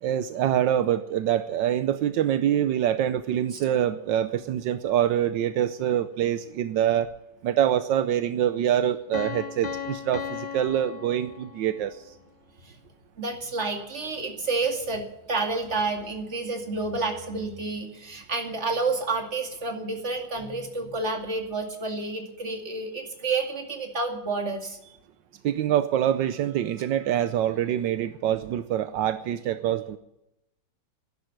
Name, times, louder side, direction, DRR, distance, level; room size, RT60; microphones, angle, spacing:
voice 1, 0.0-7.1 7.4-12.1 25.4-30.0, right 10 dB, 80° right, 11 dB, 1.4 m, -25 dB
Piano, 9.1-11.9, left 7 dB, 50° left, 0.5 m, -36 dB
voice 2, 13.2-24.8, right 3 dB, 40° right, 3 dB, 2.6 m, -29 dB
12.0 x 11.0 x 9.2 m, 0.86 s
omnidirectional pair, 1.9 m